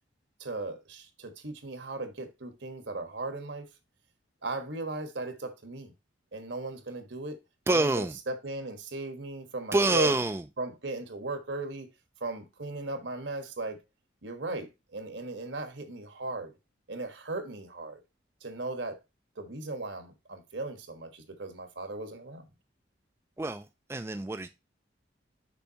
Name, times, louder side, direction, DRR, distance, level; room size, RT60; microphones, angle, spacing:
voice 1, 0.4-3.7 4.4-5.9 6.3-7.4 7.7-10.1 10.6-11.9 12.2-13.8 14.2-16.5 16.9-18.0 18.4-19.0 19.4-22.5, right 2 dB, 75° right, 1.4 m, -37 dB
voice 2, 7.7-8.2 9.7-10.4 23.4-24.5, right 2 dB, 15° right, 0.3 m, -27 dB
6.9 x 5.3 x 2.9 m
head